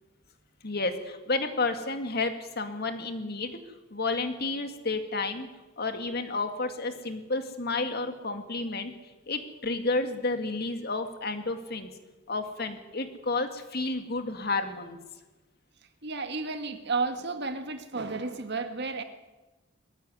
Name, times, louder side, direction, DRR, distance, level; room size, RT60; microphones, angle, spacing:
voice 1, 0.6-3.6 3.9-5.5 5.8-8.9 9.3-11.9 12.3-15.0, left 3 dB, 50° left, 7 dB, 2.2 m, -31 dB
voice 2, 16.0-19.0, right 4 dB, 55° right, 8 dB, 1.9 m, -32 dB
21.0 x 15.0 x 9.9 m, 1.2 s
head